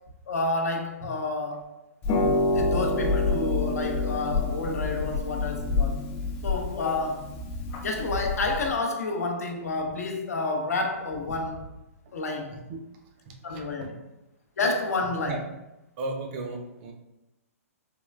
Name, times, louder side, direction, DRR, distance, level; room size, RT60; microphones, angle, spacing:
voice 1, 0.3-1.7 2.5-6.0 6.4-7.3 7.8-11.6 12.1-12.5 13.4-13.9 14.6-15.4, left 3 dB, 80° left, 3 dB, 0.6 m, -29 dB
Harp, 2.0-8.8, left 3 dB, 25° left, 0.4 m, -27 dB
voice 2, 13.5-13.9 15.3-15.4 16.0-16.9, right 3 dB, 40° right, 3 dB, 0.5 m, -35 dB
3.5 x 2.2 x 2.2 m, 0.94 s
hypercardioid pair, 135°, 8 cm